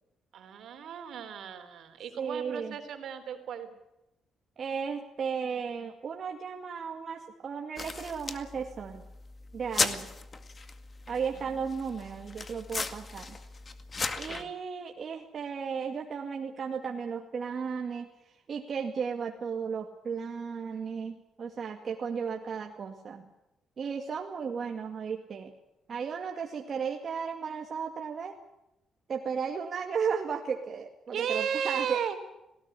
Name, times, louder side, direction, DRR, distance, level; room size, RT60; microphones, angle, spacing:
voice 1, 0.3-3.7 9.7-10.0 11.3-11.6 14.3-14.5 31.1-32.2, right 8 dB, 70° right, 7 dB, 3.6 m, -35 dB
voice 2, 2.2-2.8 4.6-9.0 9.5-10.1 11.1-13.4 14.2-18.1 18.5-23.3 23.8-25.5 25.9-28.3 29.1-32.0, right 6 dB, 50° right, 2 dB, 2.2 m, -35 dB
sound 1, 7.8-14.4, left 4 dB, 35° left, 2.1 m, -36 dB
19.0 x 18.0 x 9.9 m, 0.90 s
cardioid pair, 90°, 0 cm